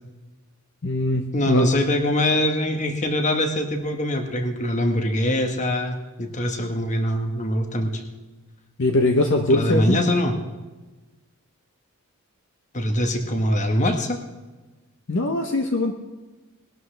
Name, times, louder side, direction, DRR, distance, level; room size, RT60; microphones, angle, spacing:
voice 1, 0.8-1.7 8.8-10.0 15.1-15.9, left 2 dB, 55° left, 5 dB, 0.8 m, -21 dB
voice 2, 1.3-8.0 9.5-10.3 12.7-14.2, left 1 dB, 35° left, 5 dB, 1.3 m, -23 dB
19.5 x 12.0 x 3.3 m, 1.2 s
head